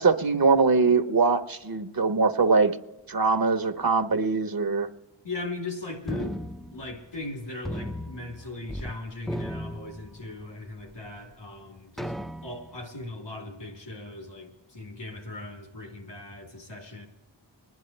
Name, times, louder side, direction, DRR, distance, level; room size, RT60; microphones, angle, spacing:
voice 1, 0.0-2.8 3.1-4.9, right 4 dB, 55° right, 8 dB, 1.0 m, -22 dB
voice 2, 5.2-6.4 6.7-17.1, left 2 dB, 80° left, 0 dB, 3.4 m, -39 dB
sound 1, 6.1-7.3 7.7-9.0 9.2-10.5 11.1-11.2 12.0-12.8, equal, ahead, 0.4 m, -36 dB
26.0 x 11.0 x 3.3 m, 1.1 s
wide cardioid pair, 70°, 43 cm